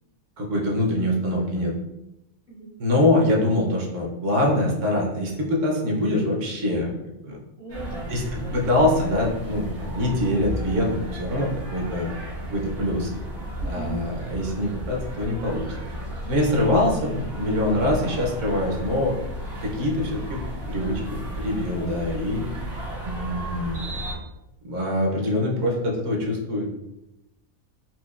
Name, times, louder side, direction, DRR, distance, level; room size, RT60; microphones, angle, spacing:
voice 1, 0.4-1.7 2.8-7.4 8.1-8.2 8.5-12.1 12.5-13.1 13.7-15.7 16.3-19.1 19.6-20.4 20.7-22.4 23.0-24.0 24.6-26.7, left 1 dB, 65° right, -1 dB, 1.0 m, -24 dB
voice 2, 7.6-8.7 13.6-14.0 22.3-22.6, right 4 dB, 60° left, -6 dB, 0.6 m, -38 dB
sound 1, 7.7-24.1, equal, 80° right, 1.6 m, -34 dB
4.3 x 2.3 x 2.3 m, 0.93 s
omnidirectional pair, 1.5 m